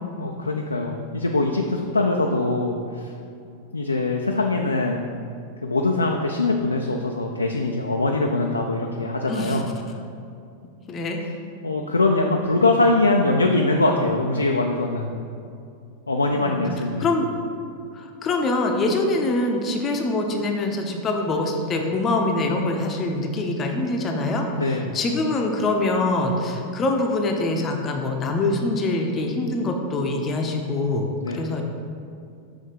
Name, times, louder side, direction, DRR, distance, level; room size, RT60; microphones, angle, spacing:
voice 1, 0.2-3.1 3.7-5.0 5.6-9.6 11.6-15.1 16.1-17.1 24.5-24.9 31.2-31.4, left 2 dB, 80° left, 2 dB, 0.4 m, -22 dB
voice 2, 9.3-9.6 10.9-11.2 16.3-16.6 17.0-17.3 17.9-31.1 31.3-31.6, left 2 dB, 25° left, 2 dB, 0.6 m, -24 dB
6.5 x 3.5 x 5.1 m, 2.5 s
figure-of-eight pair, 90°, 0 cm